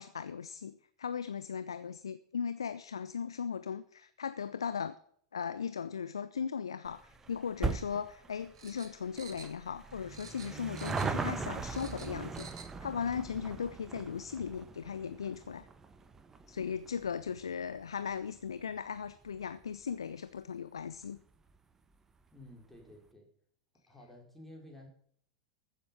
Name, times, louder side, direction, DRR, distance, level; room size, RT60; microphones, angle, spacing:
voice 1, 0.0-4.9 5.3-15.7 16.5-21.2, left 7 dB, 70° left, 0.6 m, -38 dB
sound 1, 6.9-19.6 19.9-20.0 20.9-21.0 21.2-21.3 21.5-21.6, right 4 dB, 15° right, 1.2 m, -40 dB
sound 2, 8.5-9.9 10.1-11.3 11.5-12.7 13.0-13.1, right 5 dB, 65° right, 2.1 m, -51 dB
voice 2, 22.3-23.3 23.9-24.9, left 1 dB, 5° left, 4.7 m, -53 dB
15.0 x 7.6 x 5.7 m
figure-of-eight pair, 90°, 3 cm